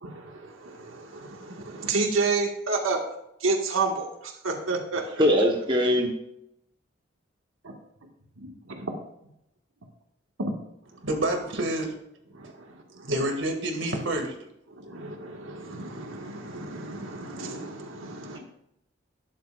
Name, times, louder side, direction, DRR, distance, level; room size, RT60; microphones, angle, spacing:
voice 1, 0.0-3.0 3.4-5.2 8.4-8.9 10.4-10.5 12.3-13.1 14.7-18.4, right 3 dB, 90° right, 1 dB, 1.9 m, -31 dB
voice 2, 5.2-6.1, equal, 25° right, 0 dB, 1.3 m, -21 dB
voice 3, 11.0-11.9 13.0-14.3, right 1 dB, 70° right, 3 dB, 2.3 m, -28 dB
13.0 x 11.0 x 2.6 m, 0.78 s
head